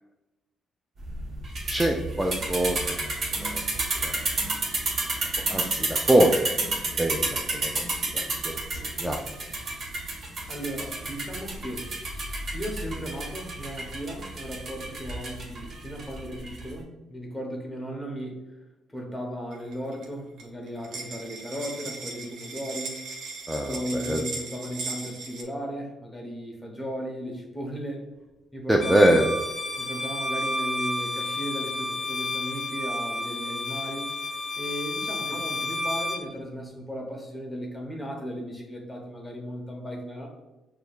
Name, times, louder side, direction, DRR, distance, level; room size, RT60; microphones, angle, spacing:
sound 1, 1.0-16.7, right 2 dB, 50° right, 1.4 m, -31 dB
voice 1, 1.7-3.1 3.4-3.6 4.0-4.3 5.5-6.5 7.0-7.8 8.1-9.2 23.5-24.2 28.7-29.3 35.3-35.4, right 1 dB, 5° right, 1 dB, 0.4 m, -24 dB
voice 2, 10.5-11.9 12.5-18.4 18.9-23.0 23.7-28.1 28.5-29.2 29.8-34.1 34.6-40.3, equal, 15° left, 0 dB, 1.0 m, -36 dB
sound 2, 19.5-20.1 20.4-20.5 20.7-25.4, right 3 dB, 70° right, 0.8 m, -37 dB
Bowed string instrument, 28.8-36.3, left 2 dB, 35° left, 0.7 m, -31 dB
6.3 x 2.3 x 2.4 m, 1.0 s
cardioid pair, 90°, 0 cm